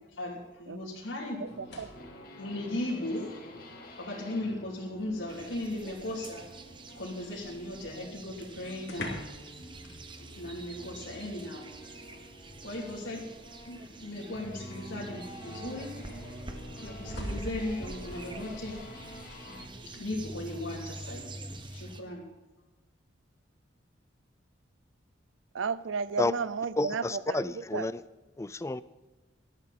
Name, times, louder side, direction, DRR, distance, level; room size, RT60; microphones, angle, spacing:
voice 1, 0.2-1.4 2.4-3.3 4.0-6.4 7.0-9.2 10.4-11.6 12.0-12.1 12.6-13.2 13.6-15.9 16.7-19.1 19.9-21.2 21.7-22.2, left 1 dB, 85° left, -7 dB, 3.2 m, -37 dB
sound 1, 1.4-2.2 3.5-3.6 4.1-5.7 7.8-7.9 8.1-8.2 8.8-9.5 9.8-10.0 11.6-12.3 13.5-13.6 15.1-15.2 16.1-17.5 20.9-21.2, left 2 dB, 65° left, 2.8 m, -46 dB
voice 2, 1.4-1.9 25.5-27.9, right 5 dB, 85° right, 17 dB, 0.6 m, -33 dB
sound 2, 1.5-19.7, equal, 50° left, 2.4 m, -49 dB
sound 3, 5.3-22.0, right 1 dB, 25° right, 1.1 m, -45 dB
voice 3, 26.8-28.0 28.4-28.8, left 2 dB, 15° left, 16 dB, 0.4 m, -30 dB
18.5 x 12.5 x 4.3 m, 1.1 s
head